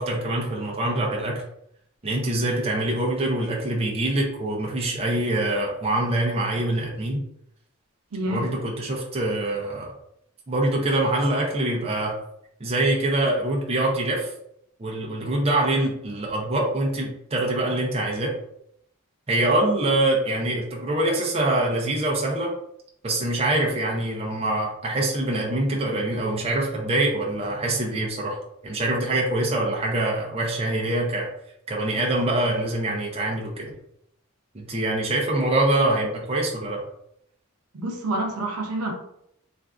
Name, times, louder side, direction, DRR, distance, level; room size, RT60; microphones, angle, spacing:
voice 1, 0.0-1.4 2.0-7.2 8.3-9.9 10.5-12.1 12.6-14.3 14.8-18.3 19.3-22.5 23.0-28.4 28.6-31.3 31.7-33.7 34.5-36.8, right 1 dB, 25° right, -2 dB, 0.5 m, -24 dB
voice 2, 8.1-8.6 37.7-38.9, right 1 dB, 90° right, 1 dB, 0.6 m, -28 dB
3.3 x 2.5 x 2.4 m, 0.75 s
head